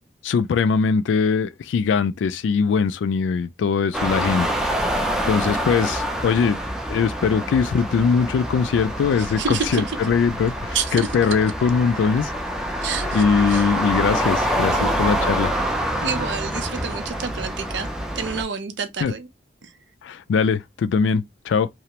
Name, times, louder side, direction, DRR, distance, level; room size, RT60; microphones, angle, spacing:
voice 1, 0.2-5.0 5.3-6.6 6.9-12.3 13.1-15.5 19.0-19.1 20.0-21.7, left 5 dB, 85° left, 0.3 m, -21 dB
sound 1, 3.9-18.4, equal, 5° right, 0.3 m, -26 dB
voice 2, 9.2-10.0 10.7-11.1 12.8-13.7 14.7-14.9 16.0-17.9 18.2-19.3 19.6-19.7, right 5 dB, 75° right, 0.5 m, -29 dB
2.3 x 2.1 x 2.8 m
head